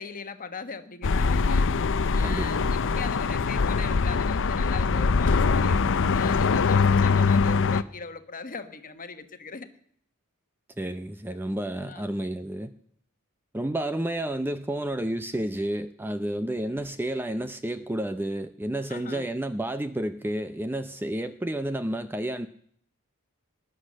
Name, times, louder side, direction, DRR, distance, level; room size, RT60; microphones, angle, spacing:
voice 1, 0.0-1.7 2.1-5.8 6.1-9.7 11.8-12.0 18.9-19.3, left 4 dB, 40° left, 9 dB, 1.3 m, -39 dB
sound 1, 1.0-7.8, left 4 dB, 60° left, 0.6 m, -23 dB
voice 2, 2.2-2.5 10.8-12.7 13.5-22.5, right 1 dB, 10° right, 10 dB, 0.5 m, -30 dB
19.5 x 10.0 x 6.4 m, 0.64 s
head